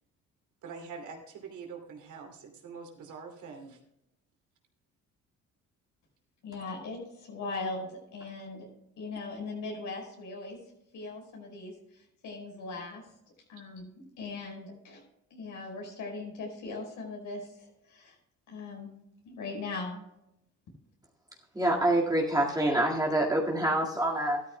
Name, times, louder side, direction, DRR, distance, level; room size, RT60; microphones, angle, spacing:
voice 1, 0.6-3.8, right 5 dB, 75° right, 2 dB, 2.7 m, -44 dB
voice 2, 6.4-8.7 9.0-10.6 10.9-13.0 13.5-13.9 14.2-15.0 15.3-18.1 18.5-18.9 19.2-20.0, left 3 dB, 80° left, 1 dB, 4.9 m, -39 dB
voice 3, 21.5-24.4, right 1 dB, 10° right, -3 dB, 1.9 m, -26 dB
13.5 x 13.0 x 2.2 m, 0.83 s
cardioid pair, 90°, 30 cm